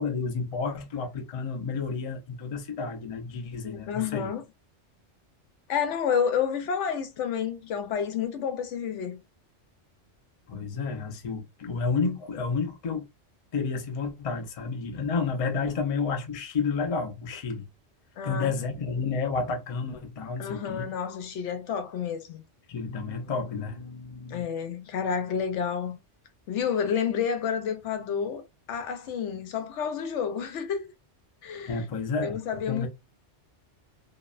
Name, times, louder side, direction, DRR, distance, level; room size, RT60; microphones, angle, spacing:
voice 1, 0.0-4.3 10.5-13.0 13.5-17.7 18.2-20.9 22.7-24.5 31.7-32.9, left 4 dB, 45° left, 0.5 m, -31 dB
voice 2, 3.6-4.4 5.7-9.2 18.2-18.5 20.4-22.4 24.3-26.0 26.5-28.4 28.7-30.9 31.4-31.8 32.2-32.9, left 7 dB, 85° left, 0.9 m, -30 dB
2.7 x 2.1 x 2.4 m
omnidirectional pair, 1.2 m